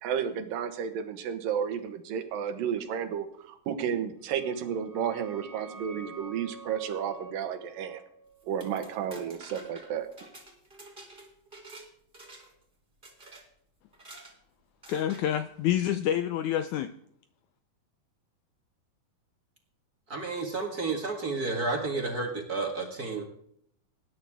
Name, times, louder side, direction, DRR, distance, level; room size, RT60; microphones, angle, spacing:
voice 1, 0.0-8.0 8.5-10.1, right 8 dB, 75° right, 8 dB, 3.0 m, -32 dB
sound 1, 4.3-9.8, right 2 dB, 5° left, 2.2 m, -48 dB
sound 2, 8.4-11.9 12.1-12.6 13.0-13.4 13.9-14.3 14.8-15.2, right 2 dB, 15° right, 2.7 m, -49 dB
voice 2, 14.9-16.9, left 11 dB, 85° left, 10 dB, 1.7 m, -28 dB
voice 3, 20.1-23.2, right 3 dB, 35° right, 2 dB, 1.6 m, -31 dB
19.5 x 10.0 x 3.6 m, 0.68 s
omnidirectional pair, 4.1 m